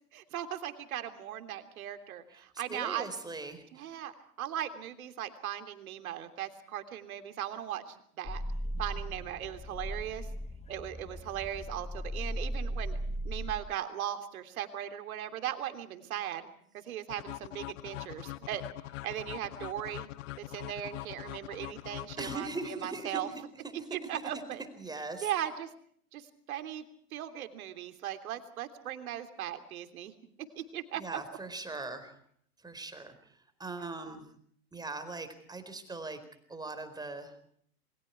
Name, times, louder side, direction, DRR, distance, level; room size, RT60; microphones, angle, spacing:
voice 1, 0.1-3.1 3.7-4.1 4.4-8.4 8.8-10.3 10.7-13.0 13.2-16.5 16.7-18.6 19.0-20.1 20.4-23.3 23.9-24.6 25.2-25.7 26.1-26.8 27.1-30.1 30.5-31.2, right 11 dB, 65° right, 8 dB, 3.3 m, -38 dB
voice 2, 2.3-3.6 22.2-23.2 24.1-24.4 24.8-25.3 30.9-32.2 32.6-33.3 33.6-34.3 34.7-36.2 36.5-37.4, right 3 dB, 10° right, 9 dB, 4.5 m, -40 dB
sound 1, 8.3-13.6, equal, 15° left, 1.7 m, -37 dB
sound 2, 17.1-23.0, left 17 dB, 55° left, 1.0 m, -43 dB
28.0 x 23.5 x 4.7 m, 0.63 s
hypercardioid pair, 110°, 45 cm